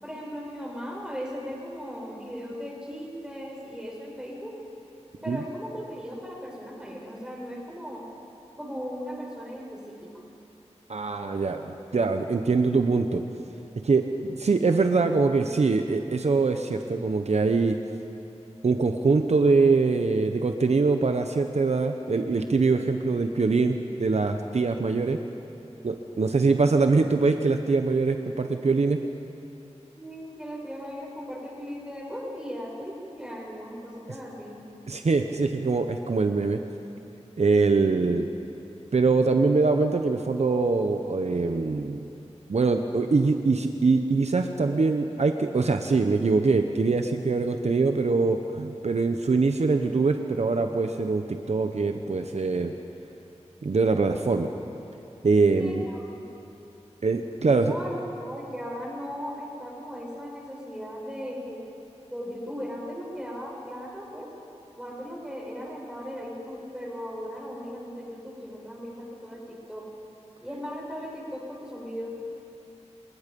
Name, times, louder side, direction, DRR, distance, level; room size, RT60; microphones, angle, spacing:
voice 1, 0.0-4.5 5.2-8.0 8.6-10.1 25.6-25.7 29.9-34.6 55.5-56.3 57.5-61.6 62.1-64.3 64.7-69.9 70.4-72.3, equal, 5° right, -3 dB, 6.8 m, -37 dB
voice 2, 10.9-13.2 13.8-17.8 18.6-25.2 25.8-29.0 34.9-36.6 37.4-38.3 38.9-42.0 42.5-52.8 53.6-54.5 55.2-55.8 57.0-57.7, right 4 dB, 70° right, 6 dB, 0.9 m, -23 dB
29.0 x 19.5 x 5.4 m, 2.8 s
wide cardioid pair, 65°, 12 cm